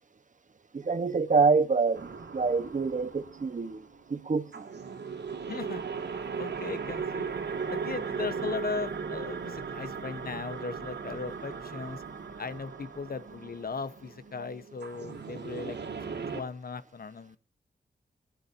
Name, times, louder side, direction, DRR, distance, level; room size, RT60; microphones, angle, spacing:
voice 1, 0.7-3.8 4.1-4.7, right 4 dB, 50° right, 1.3 m, -26 dB
sound 1, 1.9-16.4, right 5 dB, 90° right, 2.5 m, -38 dB
voice 2, 5.4-6.1 6.4-7.3 7.7-12.0 12.4-17.4, left 4 dB, 60° left, 1.2 m, -38 dB
25.0 x 11.5 x 2.8 m
wide cardioid pair, 120°, 17 cm